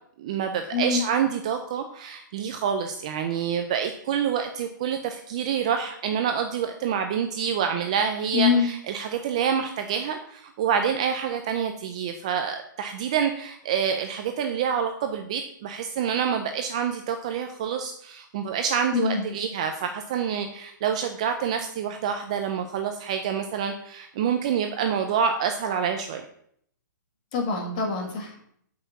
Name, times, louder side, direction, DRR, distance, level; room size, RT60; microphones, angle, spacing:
voice 1, 0.2-26.2, right 7 dB, 20° right, 6 dB, 0.4 m, -27 dB
voice 2, 0.7-1.0 8.3-8.7 18.9-19.3 27.3-28.4, left 5 dB, 25° left, 2 dB, 1.7 m, -24 dB
8.5 x 5.7 x 7.0 m, 0.67 s
hypercardioid pair, 180°, 11 cm